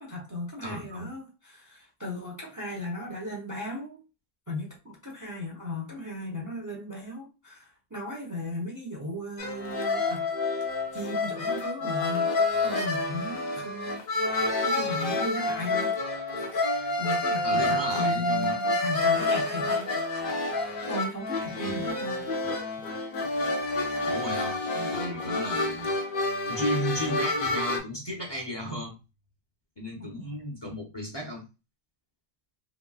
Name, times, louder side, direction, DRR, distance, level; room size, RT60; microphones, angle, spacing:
voice 1, 0.0-4.0 4.5-10.2 10.9-12.3 12.6-14.0 14.6-15.9 16.5-19.9 20.4-22.2 24.3-24.4 30.0-30.1, left 1 dB, 20° right, 0.6 m, -36 dB
voice 2, 0.6-1.1 17.4-18.6 21.5-21.9 24.0-25.9 26.5-29.0 29.8-31.4, equal, 30° left, 0.7 m, -34 dB
sound 1, 9.4-27.8, left 2 dB, 55° left, 0.9 m, -28 dB
3.1 x 2.9 x 2.3 m
omnidirectional pair, 1.1 m